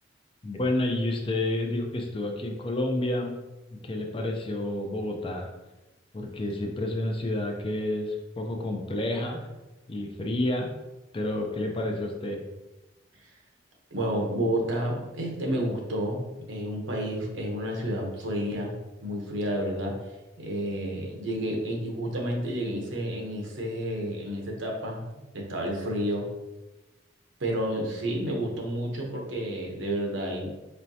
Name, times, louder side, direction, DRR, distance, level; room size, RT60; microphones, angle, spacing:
voice 1, 0.4-3.4 3.8-5.5 6.1-9.5 9.9-10.7 11.1-12.4, left 1 dB, 30° left, 2 dB, 0.4 m, -29 dB
voice 2, 13.9-18.8 19.0-20.0 20.4-25.0 25.3-26.3 27.4-30.5, equal, 85° right, 0 dB, 0.9 m, -30 dB
4.3 x 3.2 x 2.7 m, 1.1 s
head